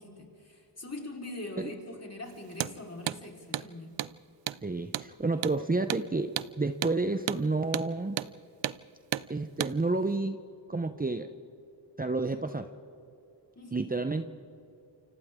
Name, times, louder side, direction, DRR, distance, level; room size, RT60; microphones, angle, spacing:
voice 1, 0.0-3.9 13.6-13.9, left 2 dB, 35° left, 0 dB, 4.5 m, -42 dB
Hammer, 2.5-2.7 3.1-3.2 3.5-3.7 4.0-4.1 4.5-4.6 4.9-5.1 5.4-5.6 5.9-6.0 6.4-6.5 6.8-7.0 7.3-7.4 7.7-7.9 8.2-8.3 8.6-8.8 9.1-9.3 9.6-9.7, right 12 dB, 75° right, 0.6 m, -32 dB
voice 2, 4.6-8.2 9.3-10.4 10.7-11.3 12.0-12.7 13.7-14.3, right 3 dB, 20° right, 8 dB, 0.9 m, -30 dB
29.0 x 25.5 x 3.8 m, 2.6 s
cardioid pair, 55°, 43 cm